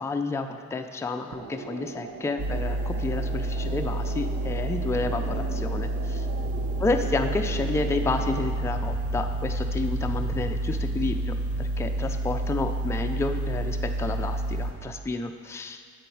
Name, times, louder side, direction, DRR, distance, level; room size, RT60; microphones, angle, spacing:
voice 1, 0.0-6.3 6.8-15.8, left 3 dB, 10° left, 5 dB, 0.3 m, -30 dB
sound 1, 1.3-8.5, right 4 dB, 80° right, 0.7 m, -39 dB
sound 2, 2.4-14.7, right 1 dB, 50° right, 0.9 m, -29 dB
sound 3, 6.2-13.3, equal, 25° right, 1.8 m, -42 dB
7.8 x 3.9 x 4.6 m, 2.2 s
cardioid pair, 90°, 30 cm